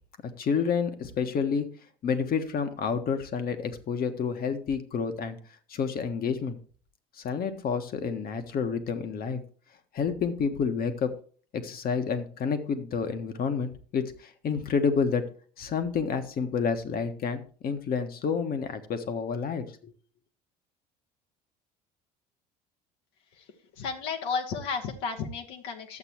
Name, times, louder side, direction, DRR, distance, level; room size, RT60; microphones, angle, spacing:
voice 1, 0.4-1.7 2.0-5.4 5.7-6.6 7.2-9.4 9.9-11.1 11.5-15.2 15.6-19.9, left 6 dB, 45° left, 8 dB, 1.4 m, -29 dB
voice 2, 23.8-26.0, left 5 dB, 65° left, 3 dB, 1.4 m, -33 dB
12.0 x 8.1 x 3.0 m, 0.42 s
hypercardioid pair, 65°, 21 cm